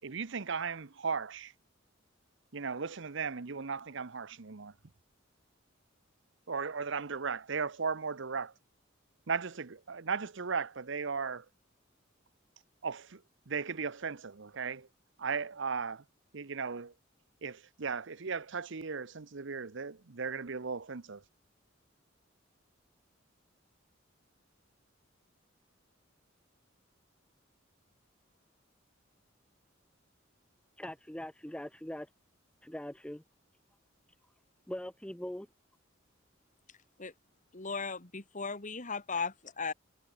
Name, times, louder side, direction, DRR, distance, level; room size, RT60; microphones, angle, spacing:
voice 1, 0.0-1.5 2.5-4.7 6.5-8.5 9.3-11.4 12.8-14.9 15.2-16.0 16.3-16.9 17.4-21.2, right 5 dB, 65° right, 0.9 m, -36 dB
voice 2, 30.8-32.1 32.6-33.2 34.7-35.5, left 1 dB, 5° left, 0.8 m, -41 dB
voice 3, 37.5-39.7, left 5 dB, 40° left, 2.3 m, -37 dB
head